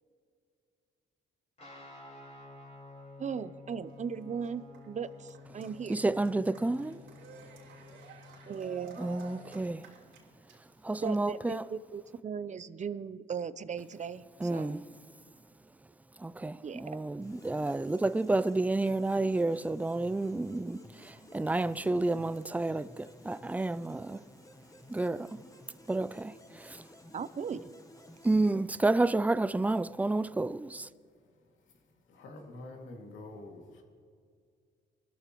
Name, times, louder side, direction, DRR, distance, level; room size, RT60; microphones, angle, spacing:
Guitar, 1.6-9.6, left 3 dB, 35° left, 4.7 m, -52 dB
voice 1, 3.2-6.0 8.5-9.0 11.0-14.7 16.6-17.1 27.1-27.7, right 6 dB, 35° right, 0.7 m, -38 dB
Cheering, 3.9-10.9, right 4 dB, 75° right, 3.1 m, -53 dB
voice 2, 5.9-7.0 9.0-9.9 10.6-11.7 14.4-15.0 16.1-24.3 24.9-26.9 28.2-30.9, right 2 dB, 10° right, 0.3 m, -30 dB
sound 1, 17.2-29.3, left 2 dB, 15° left, 1.0 m, -55 dB
voice 3, 32.1-33.8, left 2 dB, 75° left, 2.4 m, -47 dB
25.0 x 13.5 x 3.1 m
cardioid pair, 90°, 20 cm